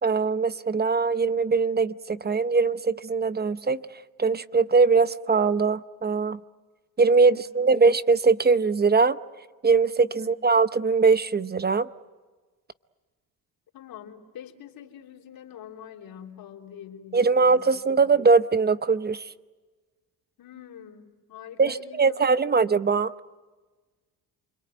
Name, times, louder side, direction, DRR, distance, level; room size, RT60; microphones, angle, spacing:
voice 1, 0.0-6.4 7.0-9.2 9.6-11.9 17.1-19.3 21.6-23.1, right 4 dB, 25° right, 14 dB, 0.8 m, -21 dB
voice 2, 7.3-7.7 10.2-10.3 13.7-18.2 20.4-22.6, left 9 dB, 60° left, 1 dB, 3.5 m, -45 dB
28.5 x 22.5 x 9.2 m, 1.3 s
supercardioid pair, 85°, 39 cm